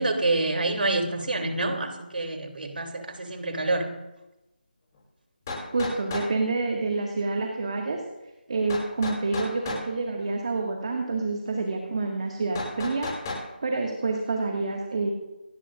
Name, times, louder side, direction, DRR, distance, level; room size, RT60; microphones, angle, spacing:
voice 1, 0.0-3.9, right 2 dB, 65° right, 4 dB, 3.2 m, -27 dB
sound 1, 4.9-5.0 5.5-6.3 8.7-9.8 12.5-13.4, left 2 dB, 20° left, 6.1 m, -33 dB
voice 2, 5.7-8.0 8.5-13.1 13.6-15.1, right 3 dB, 40° right, 1 dB, 2.0 m, -28 dB
28.0 x 12.5 x 2.6 m, 1.0 s
figure-of-eight pair, 170°, 6 cm